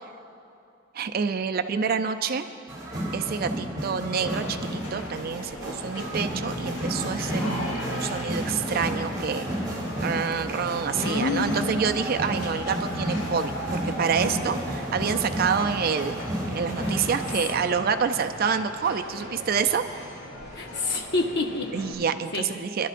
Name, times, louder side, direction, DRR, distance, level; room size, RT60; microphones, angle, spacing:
voice 1, 0.9-2.5 3.1-9.4 10.0-16.2 16.5-19.8 21.7-22.9, right 6 dB, 45° right, 8 dB, 0.4 m, -27 dB
sound 1, 2.7-17.3, right 1 dB, 20° right, 2.8 m, -31 dB
sound 2, 4.2-21.9, left 1 dB, 80° left, 2.4 m, -39 dB
voice 2, 7.3-7.6 10.9-11.7 17.3-17.4 20.5-21.7 22.3-22.4, left 2 dB, 50° left, 1 dB, 1.2 m, -28 dB
24.5 x 11.5 x 2.5 m, 2.5 s
head